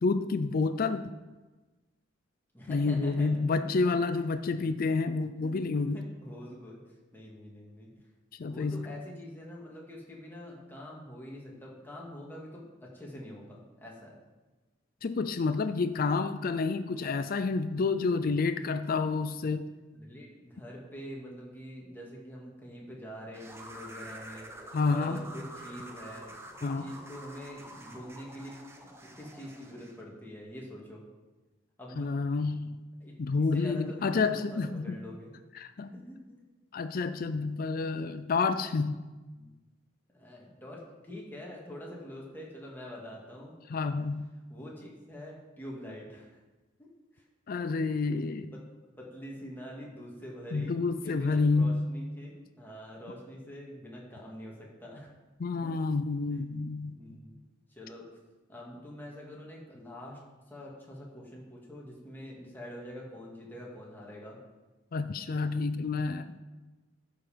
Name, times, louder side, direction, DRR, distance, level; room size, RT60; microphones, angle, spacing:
voice 1, 0.0-1.1 2.7-6.1 8.3-8.9 15.0-19.7 24.7-25.2 26.6-26.9 32.0-32.8 33.2-35.0 35.5-35.9 36.7-39.0 43.7-44.3 47.5-48.5 50.5-51.9 55.4-57.2 64.9-66.4, left 4 dB, 50° left, 10 dB, 0.4 m, -29 dB
voice 2, 2.5-3.7 4.1-6.8 7.1-7.9 8.5-14.2 19.9-31.0 31.8-32.1 33.0-33.2 33.5-35.3 35.9-36.4 39.3-39.6 40.1-43.5 44.5-46.4 46.8-47.2 48.5-48.6 49.0-50.7 51.0-55.1 55.6-55.7 56.3-56.4 56.8-57.4 57.7-58.0 58.5-60.2 60.5-64.4, equal, 10° left, -3 dB, 2.2 m, -45 dB
sound 1, 23.3-30.0, right 1 dB, 15° right, 1.0 m, -47 dB
12.5 x 5.6 x 5.2 m, 1.2 s
head